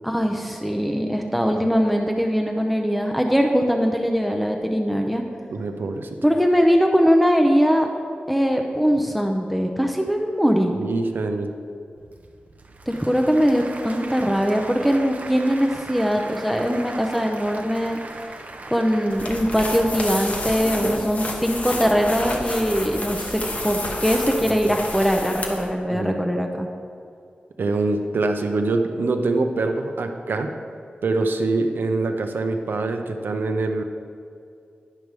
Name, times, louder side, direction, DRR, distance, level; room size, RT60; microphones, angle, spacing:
voice 1, 0.0-5.2 6.2-7.9 8.3-10.7 12.9-18.0 18.7-26.7, equal, ahead, 2 dB, 0.6 m, -21 dB
voice 2, 5.5-6.2 10.7-11.5 24.7-24.8 25.9-26.2 27.6-30.5 31.0-33.8, right 3 dB, 85° right, 6 dB, 0.6 m, -24 dB
Applause / Crowd, 12.0-20.7, right 2 dB, 50° right, 0.7 m, -39 dB
sound 1, 19.1-25.7, left 1 dB, 45° left, 1.0 m, -30 dB
10.5 x 5.2 x 4.7 m, 2.4 s
wide cardioid pair, 85°, 3 cm